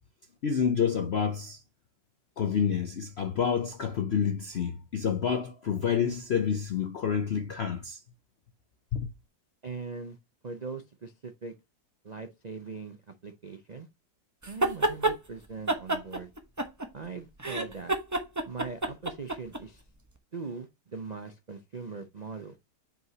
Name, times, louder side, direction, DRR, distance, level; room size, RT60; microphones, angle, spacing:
voice 1, 0.4-1.6 2.4-8.0 8.9-9.1, left 7 dB, 70° left, 0.6 m, -28 dB
voice 2, 9.6-10.2 10.4-11.5 12.0-13.9 14.5-16.3 16.9-18.0 18.5-19.8 20.3-22.6, right 4 dB, 80° right, 0.3 m, -41 dB
sound 1, 14.4-15.2 15.7-17.1 17.4-19.6, right 2 dB, 15° right, 0.7 m, -28 dB
7.9 x 5.3 x 2.8 m
omnidirectional pair, 1.9 m